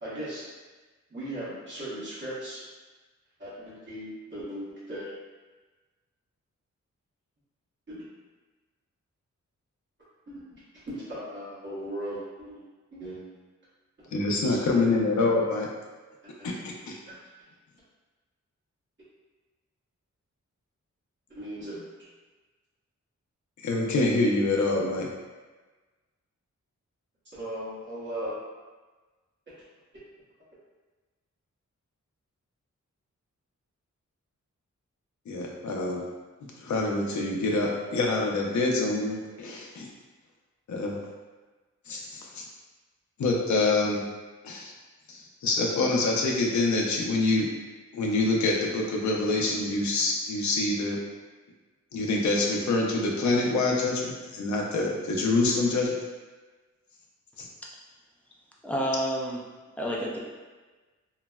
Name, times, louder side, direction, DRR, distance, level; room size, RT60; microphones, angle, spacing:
voice 1, 0.0-0.4 1.1-2.6 3.4-5.1 7.9-8.0 10.3-13.3 14.4-14.9 16.2-16.5 17.1-17.2 21.3-21.9 27.3-28.3 29.5-29.6, right 1 dB, 40° right, -10 dB, 1.0 m, -38 dB
voice 2, 14.1-15.7 16.4-16.7 23.6-25.1 35.3-36.0 36.6-39.9 40.7-41.0 41.9-42.4 43.2-44.0 44.4-44.7 45.1-47.5 47.9-51.0 51.9-55.9 57.4-57.5, left 2 dB, 70° left, -1 dB, 0.5 m, -26 dB
voice 3, 58.6-59.4 59.8-60.2, equal, 5° left, -4 dB, 0.3 m, -29 dB
3.8 x 2.0 x 2.2 m, 1.3 s
wide cardioid pair, 170°, 30 cm